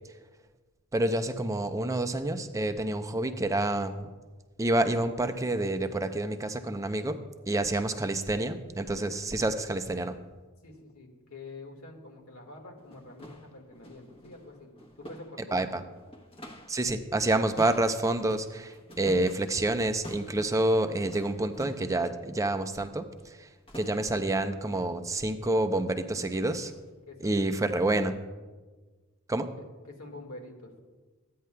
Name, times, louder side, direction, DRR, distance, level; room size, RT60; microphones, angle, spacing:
voice 1, 0.9-4.1 4.6-7.2 7.5-10.2 15.5-15.8 16.7-23.5 23.7-26.7 27.2-28.1 29.3-29.5, right 1 dB, 15° right, 8 dB, 0.5 m, -28 dB
voice 2, 10.6-14.7 15.0-15.7 27.1-27.6 29.6-30.7, left 2 dB, 85° left, 2 dB, 1.6 m, -47 dB
sound 1, 12.0-12.1 12.7-16.9 17.1-22.0 23.2-23.4 23.7-24.3 24.7-25.0 25.4-25.6 26.0-26.2 26.7-26.9 27.4-27.5 28.1-28.2, equal, 25° left, 0.9 m, -48 dB
15.0 x 9.4 x 2.2 m, 1.3 s
head